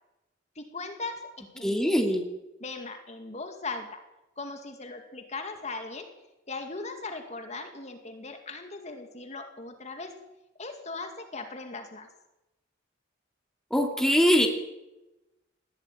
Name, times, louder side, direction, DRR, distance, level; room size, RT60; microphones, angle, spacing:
voice 1, 0.6-1.8 2.6-4.0 4.4-6.1 6.5-10.1 10.6-12.1, left 3 dB, 35° left, 5 dB, 2.3 m, -39 dB
voice 2, 1.6-2.2 13.7-14.5, equal, 5° left, 2 dB, 2.7 m, -22 dB
20.0 x 15.5 x 9.3 m, 0.98 s
head